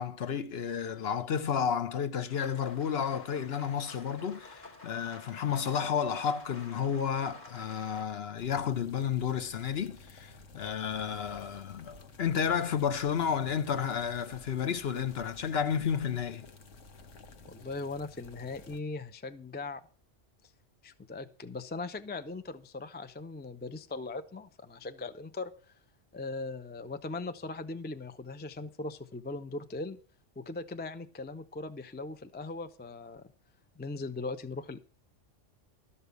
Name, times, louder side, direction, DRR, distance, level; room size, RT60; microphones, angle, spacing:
voice 1, 0.0-16.4, left 7 dB, 60° left, 1.0 m, -31 dB
Rain, 2.3-8.0, left 2 dB, 40° left, 1.3 m, -50 dB
sound 1, 8.4-18.8, left 3 dB, 85° left, 1.4 m, -52 dB
voice 2, 17.5-19.8 20.8-25.7 26.1-30.0 30.4-33.2 33.8-34.8, left 3 dB, 15° left, 0.4 m, -39 dB
13.0 x 5.6 x 8.1 m
omnidirectional pair, 1.2 m